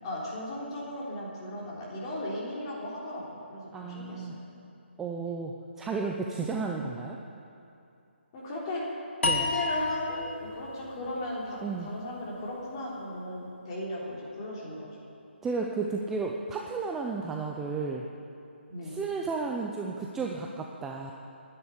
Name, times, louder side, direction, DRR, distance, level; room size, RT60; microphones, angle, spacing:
voice 1, 0.0-4.3 8.3-8.8 9.3-14.9 18.7-19.0, left 1 dB, 25° left, -5 dB, 3.6 m, -36 dB
voice 2, 3.7-4.4 5.0-7.2 9.2-9.4 11.6-11.9 15.4-18.0 18.8-21.1, right 4 dB, 5° right, 0 dB, 0.5 m, -33 dB
sound 1, 9.2-12.4, left 3 dB, 80° left, 1.8 m, -32 dB
10.5 x 9.6 x 9.9 m, 2.7 s
hypercardioid pair, 160°, 6 cm